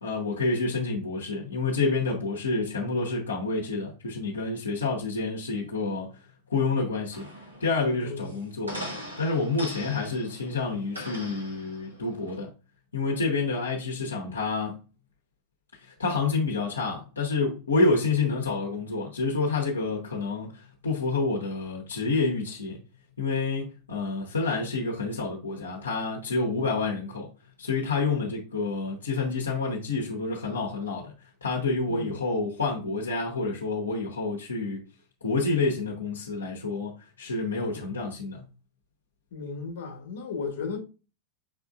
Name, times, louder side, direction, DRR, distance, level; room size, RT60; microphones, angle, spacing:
voice 1, 0.0-6.1 6.5-7.2 7.6-8.8 9.2-12.5 12.9-14.8 16.0-22.8 23.2-27.3 27.6-31.1 31.4-34.8 35.2-36.9 37.2-38.4, left 3 dB, 75° left, 1.0 m, -28 dB
sound 1, 7.1-12.4, equal, 80° right, 1.6 m, -41 dB
voice 2, 8.0-8.3 31.9-32.3 37.7-38.0 39.3-40.8, left 4 dB, 55° left, 1.3 m, -35 dB
5.9 x 3.5 x 2.3 m
figure-of-eight pair, 90°, 0 cm